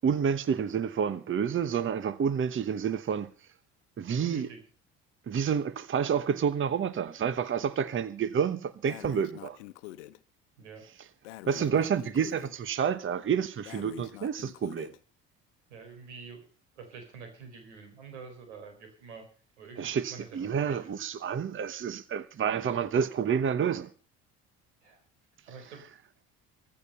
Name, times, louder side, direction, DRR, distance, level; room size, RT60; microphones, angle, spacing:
voice 1, 0.0-3.3 4.0-4.5 5.3-9.6 11.0-11.1 11.5-14.9 19.8-23.9, right 7 dB, 35° right, 1.0 m, -29 dB
voice 2, 4.2-4.6 10.6-10.8 11.6-11.8 15.7-16.4 16.8-19.3 19.6-20.9 24.8-25.0 25.4-25.8, right 5 dB, 90° right, 4.5 m, -47 dB
Breathing, 8.8-10.2 11.2-12.6 13.6-15.0, left 16 dB, 85° left, 0.9 m, -45 dB
14.5 x 14.5 x 5.6 m
hypercardioid pair, 70°, 34 cm